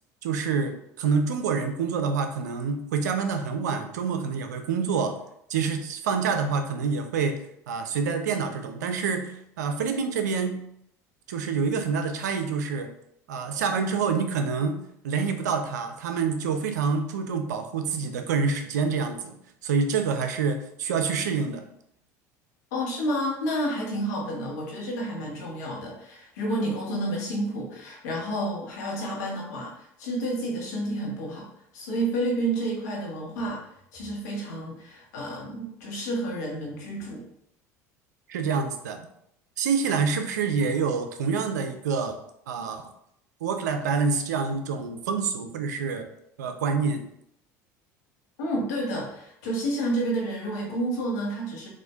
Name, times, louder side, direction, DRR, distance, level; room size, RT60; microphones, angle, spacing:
voice 1, 0.2-5.2 5.5-10.6 11.3-12.9 13.3-19.4 19.6-21.6 38.3-39.0 39.6-42.2 42.5-42.8 43.4-46.1 46.4-47.0, right 5 dB, 85° right, 7 dB, 0.4 m, -27 dB
voice 2, 22.7-31.5 31.7-33.6 33.9-37.2 48.4-51.7, right 1 dB, 80° left, -2 dB, 1.0 m, -30 dB
4.2 x 2.4 x 2.3 m, 0.75 s
hypercardioid pair, 75°, 9 cm